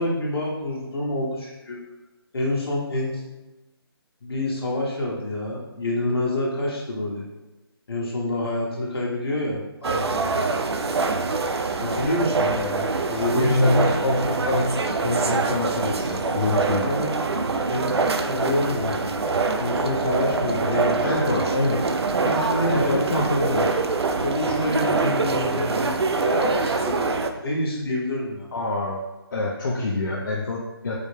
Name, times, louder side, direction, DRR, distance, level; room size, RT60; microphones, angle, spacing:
voice 1, 0.0-1.8 2.3-3.2 4.2-7.2 7.9-10.3 11.8-14.2 16.8-17.2 17.7-17.9 18.3-19.2 19.6-21.3 22.2-23.5 24.2-28.5, left 1 dB, 65° left, -3 dB, 1.3 m, -27 dB
sound 1, 9.8-27.3, right 3 dB, 80° right, 0.4 m, -24 dB
voice 2, 12.6-13.1 13.4-14.8 15.0-16.8 21.0-21.8 22.7-23.7 28.5-29.0 29.3-31.0, left 2 dB, 50° left, -3 dB, 0.5 m, -25 dB
4.8 x 2.1 x 3.3 m, 1.1 s
figure-of-eight pair, 165°, 13 cm